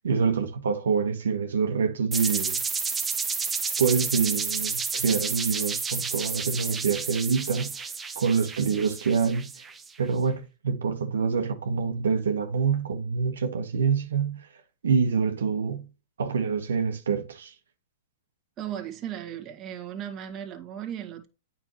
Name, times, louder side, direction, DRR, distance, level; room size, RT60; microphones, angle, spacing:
voice 1, 0.0-2.6 3.8-7.8 8.1-9.5 10.0-14.5 14.8-15.9 16.2-17.5, right 5 dB, 85° right, 1.5 m, -26 dB
sound 1, 2.1-9.9, right 5 dB, 15° right, 1.0 m, -31 dB
voice 2, 18.6-21.3, right 10 dB, 30° right, 1.8 m, -36 dB
8.8 x 5.7 x 3.1 m
hypercardioid pair, 130°, 0 cm